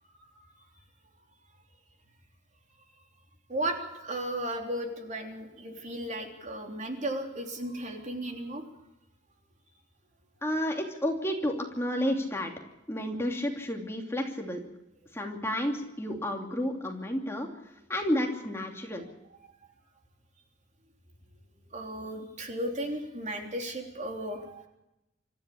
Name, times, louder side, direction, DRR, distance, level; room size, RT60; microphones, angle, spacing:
voice 1, 3.5-8.6 21.7-24.6, right 1 dB, 40° right, 3 dB, 3.4 m, -35 dB
voice 2, 10.4-12.5 12.9-14.6 15.1-17.5 17.9-19.0, equal, 15° left, 2 dB, 2.8 m, -31 dB
25.5 x 14.0 x 8.6 m, 0.92 s
head